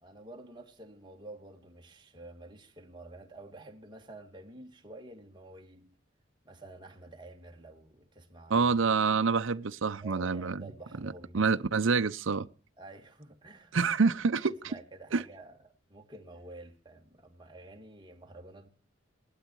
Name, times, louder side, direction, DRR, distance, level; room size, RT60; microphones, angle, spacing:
voice 1, 0.0-5.9 6.4-8.7 10.0-12.0 12.8-13.8 14.5-18.7, right 2 dB, 25° right, 2.1 m, -49 dB
voice 2, 8.5-10.6 11.0-12.5 13.7-14.5 15.1-15.2, right 4 dB, 80° right, 0.7 m, -27 dB
18.5 x 12.0 x 4.6 m
head